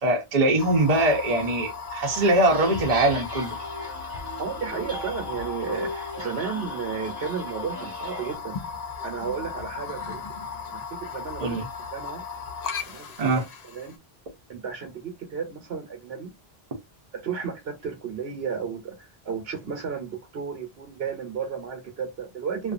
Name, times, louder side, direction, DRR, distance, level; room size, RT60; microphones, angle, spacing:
voice 1, 0.0-3.6 11.4-11.7 13.2-13.4, right 2 dB, 40° right, 0.8 m, -22 dB
sound 1, 0.6-13.9, left 5 dB, 50° left, 0.5 m, -36 dB
sound 2, 2.0-8.4, equal, 15° right, 1.0 m, -39 dB
voice 2, 4.4-8.6 9.0-10.3 10.7-11.6 11.9-12.2 12.9-13.9 14.5-16.3 17.2-22.7, right 6 dB, 70° right, 1.1 m, -33 dB
2.5 x 2.4 x 2.5 m
omnidirectional pair, 1.1 m